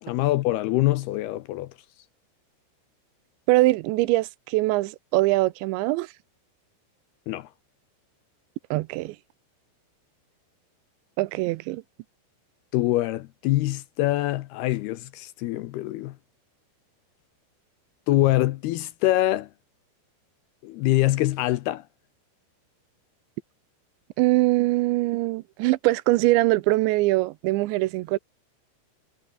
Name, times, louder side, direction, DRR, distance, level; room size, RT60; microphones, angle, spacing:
voice 1, 0.0-1.7 7.3-7.5 12.7-16.2 18.1-19.5 20.6-21.8, left 16 dB, 75° left, 2.5 m, -24 dB
voice 2, 3.5-6.1 8.7-9.2 11.2-11.8 24.2-28.2, right 19 dB, 85° right, 3.0 m, -22 dB
omnidirectional pair, 5.2 m